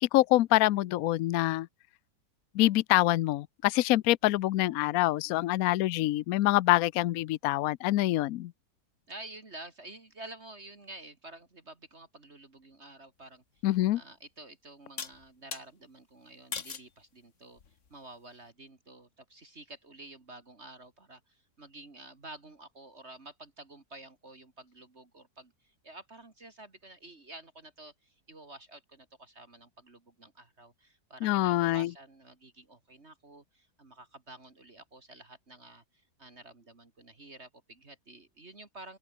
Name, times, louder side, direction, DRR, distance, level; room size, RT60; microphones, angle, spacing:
voice 1, 0.0-1.7 2.5-8.5 13.6-14.0 31.2-31.9, left 16 dB, 70° left, 0.9 m, -25 dB
voice 2, 5.2-5.6 9.1-13.4 13.9-17.6 17.9-39.0, right 2 dB, 40° right, 2.7 m, -50 dB
sound 1, 13.6-13.7 15.0-15.6 16.5-16.9 17.6-18.0, left 6 dB, 50° left, 1.8 m, -39 dB
open air
omnidirectional pair, 1.8 m